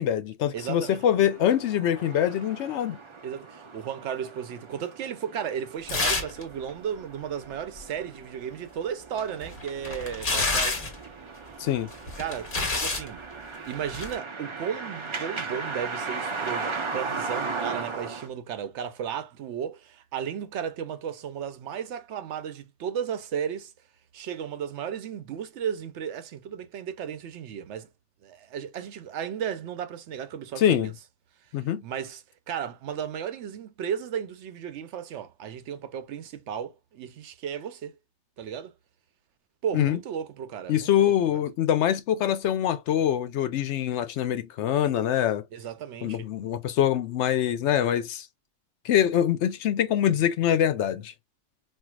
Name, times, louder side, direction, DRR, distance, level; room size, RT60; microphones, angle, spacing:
voice 1, 0.0-3.0 11.6-11.9 30.6-30.9 31.5-31.8 39.7-40.0 40.7-45.4 46.0-48.3 48.8-51.1, left 10 dB, 75° left, 0.9 m, -24 dB
voice 2, 0.5-1.0 3.2-10.8 12.2-12.5 12.8-13.2 13.7-23.7 24.1-27.9 28.2-30.9 31.8-37.9 38.4-38.7 39.6-41.1 45.5-46.3, right 8 dB, 75° right, 0.9 m, -34 dB
sound 1, 0.6-18.3, right 4 dB, 40° right, 0.4 m, -37 dB
sound 2, 5.9-6.4 6.7-6.8 9.2-11.0 11.9-13.1 13.9-14.1, left 3 dB, 45° left, 1.3 m, -28 dB
4.5 x 2.2 x 2.2 m
omnidirectional pair, 1.2 m